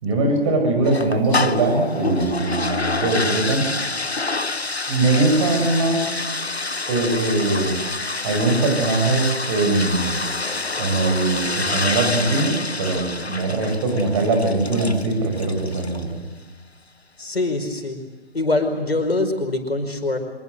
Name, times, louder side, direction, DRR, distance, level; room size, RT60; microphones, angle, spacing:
voice 1, 0.0-3.7 4.9-6.1 6.9-7.8 8.2-10.1 10.8-16.2, right 2 dB, 30° right, 4 dB, 6.1 m, -21 dB
sound 1, 0.8-16.1, left 3 dB, 90° left, 1.0 m, -27 dB
voice 2, 17.2-18.0 18.3-20.2, left 2 dB, 75° left, 5 dB, 5.1 m, -23 dB
25.0 x 21.5 x 7.8 m, 1.2 s
figure-of-eight pair, 140°, 31 cm